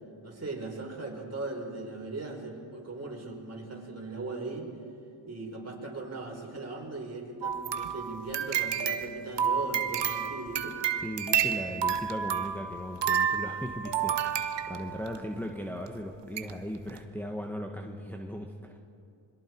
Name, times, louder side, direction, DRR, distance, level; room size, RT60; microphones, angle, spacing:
voice 1, 0.2-4.7 5.3-10.7, right 3 dB, 30° right, 0 dB, 5.0 m, -39 dB
sound 1, 7.4-15.2 15.9-16.0 16.4-16.5 16.9-17.0, right 8 dB, 60° right, 1.2 m, -30 dB
voice 2, 11.0-18.8, equal, 5° left, 1 dB, 1.5 m, -38 dB
26.0 x 22.0 x 4.6 m, 2.6 s
cardioid pair, 65°, 48 cm